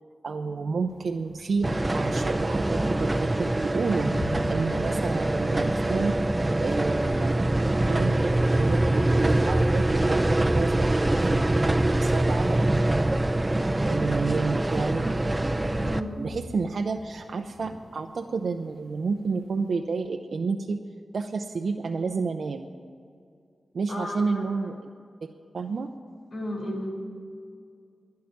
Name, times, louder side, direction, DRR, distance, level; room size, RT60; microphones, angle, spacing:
voice 1, 0.2-4.1 4.5-6.2 6.6-7.5 7.8-13.2 13.8-15.1 16.2-20.8 21.1-22.7 23.7-24.8 25.2-25.9, right 4 dB, 70° right, 5 dB, 0.6 m, -30 dB
sound 1, 0.9-19.7, equal, 40° left, 2.3 m, -45 dB
sound 2, 1.6-16.0, right 1 dB, 20° right, 0.6 m, -24 dB
voice 2, 15.8-16.1 23.9-24.7 26.3-26.9, left 1 dB, 90° left, -2 dB, 4.4 m, -34 dB
11.5 x 10.5 x 9.8 m, 2.3 s
wide cardioid pair, 90°, 0 cm